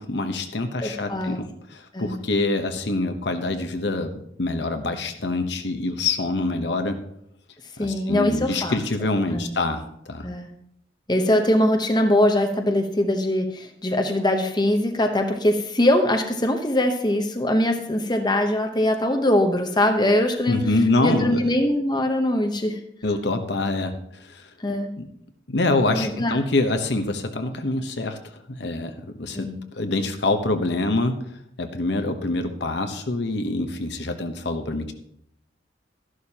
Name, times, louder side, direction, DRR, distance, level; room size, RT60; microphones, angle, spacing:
voice 1, 0.0-7.0 7.8-9.8 10.1-10.3 20.5-21.4 23.0-23.9 24.2-24.5 25.0-25.1 25.5-28.2 28.5-31.2 31.6-34.9, left 2 dB, 65° left, 7 dB, 1.0 m, -25 dB
voice 2, 0.8-1.4 1.9-2.2 7.8-8.8 9.3-9.5 10.2-10.5 11.1-20.6 21.0-22.8 24.6-24.9 25.9-26.4 29.3-29.6, left 1 dB, 25° left, 4 dB, 0.9 m, -22 dB
13.0 x 11.5 x 2.9 m, 0.72 s
head